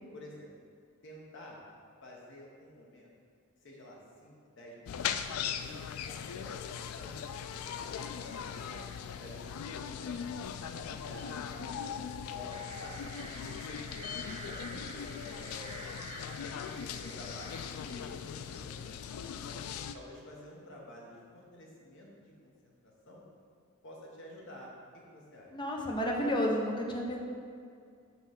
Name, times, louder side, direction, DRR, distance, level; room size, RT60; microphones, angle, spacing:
voice 1, 0.1-0.5 1.0-1.6 2.0-3.1 3.6-5.0 5.5-6.6 7.0-8.8 9.2-13.0 13.4-14.1 14.4-15.8 17.0-17.5 17.9-19.6 19.9-22.7 23.0-23.2 23.8-25.5, left 1 dB, 60° left, -2 dB, 1.1 m, -51 dB
sound 1, 4.9-20.0, left 8 dB, 85° left, 0.3 m, -39 dB
sound 2, 12.5-17.7, right 2 dB, 25° right, 0.6 m, -48 dB
voice 2, 25.5-27.2, equal, 20° left, -1 dB, 0.7 m, -31 dB
5.8 x 3.1 x 5.7 m, 2.2 s
head